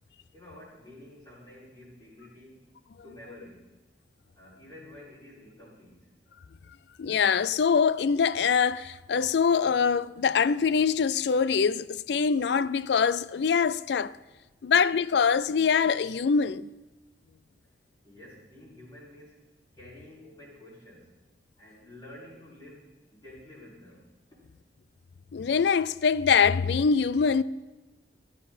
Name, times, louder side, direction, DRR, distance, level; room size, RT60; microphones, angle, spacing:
voice 1, 0.3-2.6 3.0-3.6 4.3-6.1 18.0-19.4 19.7-21.1 21.6-24.1 24.3-24.4, left 1 dB, 25° left, 5.8 m, -50 dB
voice 2, 7.0-14.1 14.6-16.7 25.3-27.4, left 6 dB, 70° left, 0.4 m, -24 dB
14.5 x 12.0 x 4.4 m
head